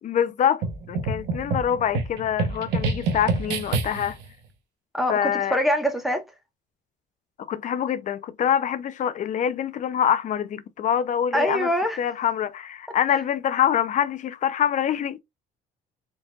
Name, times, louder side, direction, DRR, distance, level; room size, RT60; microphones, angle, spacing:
voice 1, 0.0-4.2 5.1-5.6 7.5-11.7 12.0-15.2, left 9 dB, 45° left, 0.5 m, -25 dB
sound 1, 0.6-4.3, right 3 dB, 90° right, 0.9 m, -27 dB
voice 2, 4.9-6.2 11.3-12.0, equal, ahead, 1.2 m, -24 dB
3.9 x 3.6 x 2.3 m
cardioid pair, 110°, 17 cm